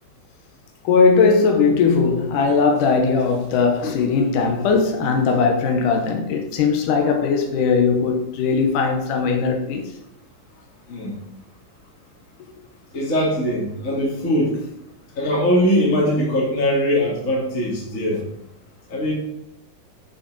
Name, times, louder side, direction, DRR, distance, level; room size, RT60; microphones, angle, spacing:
voice 1, 0.8-9.8, left 5 dB, 80° left, 2.8 m, -19 dB
voice 2, 12.9-14.5 15.2-18.2 18.9-19.1, equal, 25° left, 2.2 m, -21 dB
9.8 x 5.8 x 5.3 m
omnidirectional pair, 3.7 m